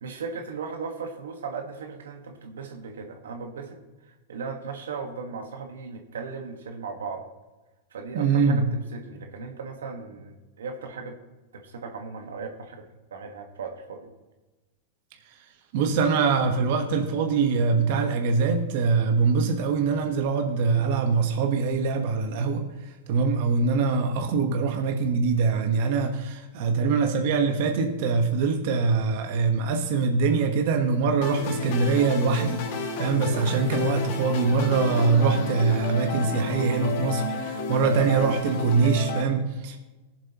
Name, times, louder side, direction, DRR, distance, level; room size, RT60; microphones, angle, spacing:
voice 1, 0.0-3.8 4.1-7.3 7.9-8.6 8.9-11.2 11.5-14.1 26.6-26.7, right 5 dB, 90° right, 4 dB, 1.5 m, -37 dB
voice 2, 8.1-8.7 15.7-22.6 23.1-39.8, right 4 dB, 60° right, 4 dB, 1.2 m, -23 dB
sound 1, 31.2-39.2, left 3 dB, 60° left, 2.0 m, -31 dB
18.5 x 7.5 x 3.0 m, 1.2 s
hypercardioid pair, 120°, 0 cm